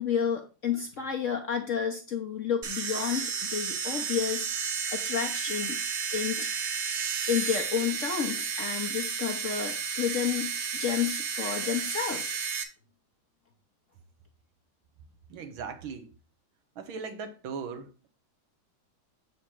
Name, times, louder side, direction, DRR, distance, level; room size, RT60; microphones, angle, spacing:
voice 1, 0.0-4.5 4.9-5.8 6.1-6.6 7.3-12.2, left 7 dB, 55° left, 0.9 m, -31 dB
sound 1, 2.6-12.6, right 6 dB, 50° right, 0.8 m, -32 dB
voice 2, 15.3-16.1 16.8-18.1, right 5 dB, 85° right, 1.9 m, -38 dB
7.3 x 5.0 x 4.5 m
omnidirectional pair, 2.2 m